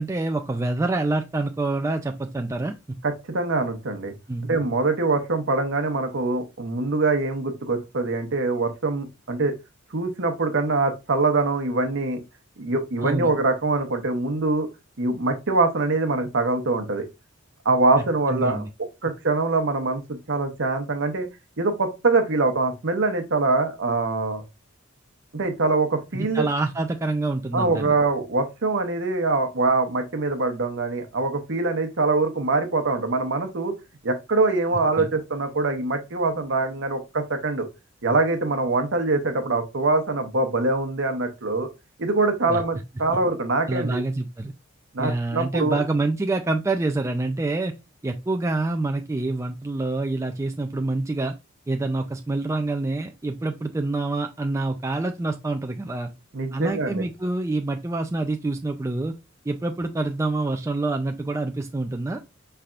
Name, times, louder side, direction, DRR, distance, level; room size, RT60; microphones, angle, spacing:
voice 1, 0.0-2.7 4.3-4.5 13.0-13.3 18.3-18.7 26.1-27.9 35.0-35.1 42.5-42.6 43.7-44.5 45.0-47.7 48.0-51.3 51.7-56.1 56.5-59.1 59.5-62.2, right 2 dB, 15° right, 0.3 m, -26 dB
voice 2, 3.0-4.1 4.5-9.5 9.9-12.2 12.6-14.7 15.0-17.1 17.6-18.6 19.0-21.3 21.6-24.4 25.3-26.5 27.5-33.7 34.0-37.7 38.0-41.7 42.0-44.0 44.9-45.8 56.3-57.0, right 3 dB, 60° right, 0.9 m, -23 dB
5.7 x 3.3 x 2.4 m
head